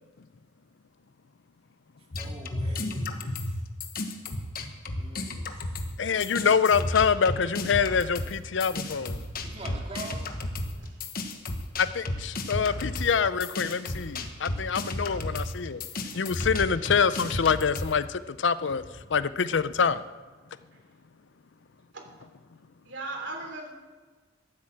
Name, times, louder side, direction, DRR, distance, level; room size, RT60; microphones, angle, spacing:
sound 1, 2.1-5.9 6.2-17.9, left 2 dB, 50° left, 1.2 m, -33 dB
voice 1, 2.1-3.6 4.9-5.5 9.4-10.4, right 2 dB, 30° right, -1 dB, 2.6 m, -43 dB
voice 2, 6.0-9.3 11.8-15.8 16.2-18.8 19.1-20.0, left 6 dB, 75° left, 15 dB, 0.5 m, -25 dB
voice 3, 8.7-9.7 10.6-11.0 11.5-11.8 15.0-15.1 19.5-19.8 20.7-20.8 21.9-22.0 22.8-23.7, right 2 dB, 70° right, 2 dB, 3.2 m, -42 dB
14.0 x 8.4 x 7.7 m, 1.4 s
head